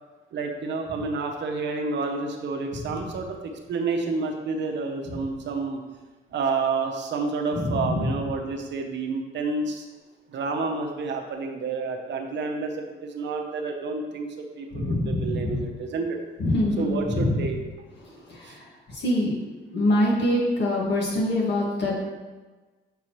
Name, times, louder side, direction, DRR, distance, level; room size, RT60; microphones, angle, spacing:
voice 1, 0.3-5.8 6.3-9.9 10.3-16.2 16.8-17.6 18.4-18.6, right 4 dB, 65° right, 3 dB, 0.9 m, -29 dB
voice 2, 2.7-3.1 7.5-8.1 14.7-15.6 16.4-17.5 18.0-19.3 19.7-22.1, left 1 dB, 60° left, -3 dB, 1.9 m, -25 dB
6.8 x 4.7 x 3.1 m, 1.3 s
cardioid pair, 90°, 20 cm